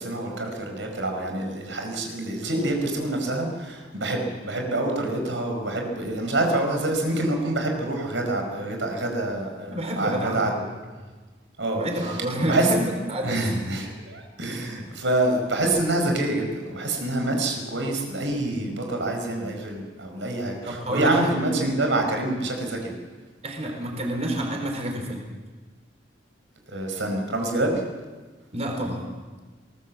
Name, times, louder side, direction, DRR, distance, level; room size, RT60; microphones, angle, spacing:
voice 1, 0.0-10.6 11.6-11.8 12.5-12.7 13.2-22.9 26.7-27.8, right 2 dB, 85° right, 3 dB, 4.8 m, -26 dB
voice 2, 9.7-10.5 11.8-13.5 14.4-14.5 20.7-21.3 23.4-25.3 28.5-29.1, right 1 dB, 35° right, 2 dB, 4.4 m, -28 dB
22.5 x 19.5 x 7.5 m, 1.4 s
head